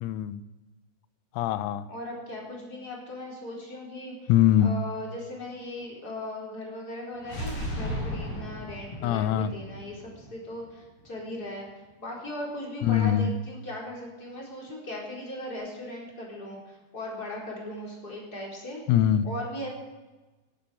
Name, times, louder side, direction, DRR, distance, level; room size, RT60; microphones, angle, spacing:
voice 1, 0.0-0.4 1.4-1.9 4.3-4.7 9.0-9.5 12.8-13.3 18.9-19.3, left 10 dB, 90° left, 13 dB, 3.5 m, -22 dB
voice 2, 1.9-4.3 4.6-11.7 12.0-18.8 19.2-19.7, left 1 dB, 20° left, -3 dB, 4.0 m, -38 dB
sound 1, 7.2-11.0, equal, 35° left, 8.1 m, -36 dB
17.5 x 11.5 x 5.6 m, 1.2 s
omnidirectional pair, 6.0 m